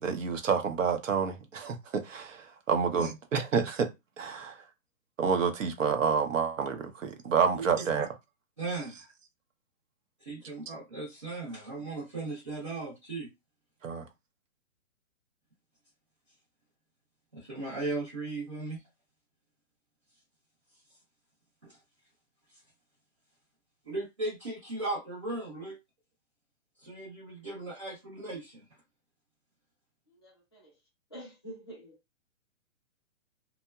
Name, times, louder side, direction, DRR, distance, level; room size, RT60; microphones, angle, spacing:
voice 1, 0.0-4.6 5.2-8.1 13.8-14.1, right 6 dB, 70° right, 0.8 m, -29 dB
voice 2, 8.6-9.1 10.2-13.3 17.3-18.8 21.6-21.8 23.8-25.8 26.8-28.6, right 2 dB, 25° right, 0.8 m, -37 dB
voice 3, 30.1-30.7 31.1-32.0, right 1 dB, 20° left, 0.6 m, -47 dB
2.8 x 2.2 x 2.2 m
hypercardioid pair, 175°, 40 cm